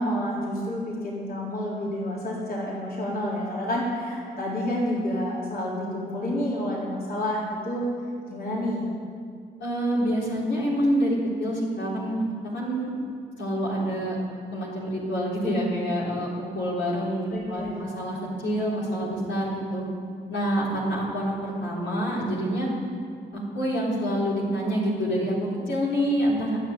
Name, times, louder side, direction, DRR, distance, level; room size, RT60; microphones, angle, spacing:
voice 1, 0.0-7.9 8.3-8.8 17.3-17.7, equal, 50° left, -5 dB, 3.8 m, -29 dB
voice 2, 9.6-12.9 13.4-14.2 14.5-19.9 20.3-22.7 23.3-25.4 25.7-26.6, equal, 70° left, -7 dB, 4.0 m, -27 dB
10.5 x 7.5 x 9.3 m, 2.2 s
supercardioid pair, 45°, 20 cm